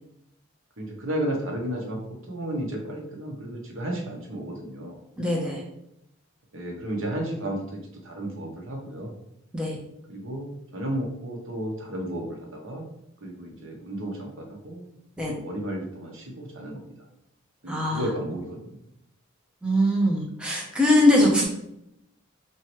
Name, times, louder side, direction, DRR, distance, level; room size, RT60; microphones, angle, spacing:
voice 1, 0.8-5.0 6.5-9.1 10.1-15.0 15.2-16.9 17.6-18.8, right 1 dB, 65° right, 0 dB, 1.0 m, -33 dB
voice 2, 5.2-5.6 9.5-9.8 15.2-15.3 17.7-18.0 19.6-21.4, left 1 dB, 5° right, -3 dB, 0.7 m, -21 dB
4.6 x 3.0 x 3.0 m, 0.80 s
head